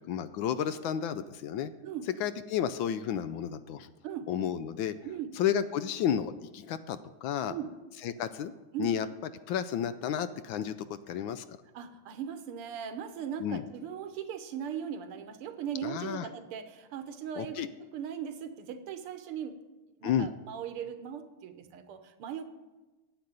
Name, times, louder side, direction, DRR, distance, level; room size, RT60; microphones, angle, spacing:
voice 1, 0.0-1.7 2.2-3.9 4.3-4.9 5.4-7.6 8.0-8.5 8.8-9.1 9.5-11.4 13.4-13.6 15.8-16.3 17.4-17.7 20.0-20.3, left 9 dB, 75° left, 13 dB, 1.2 m, -32 dB
voice 2, 11.7-19.6 20.0-22.4, right 8 dB, 85° right, 9 dB, 1.9 m, -39 dB
10.5 x 8.1 x 8.8 m, 1.1 s
omnidirectional pair, 2.4 m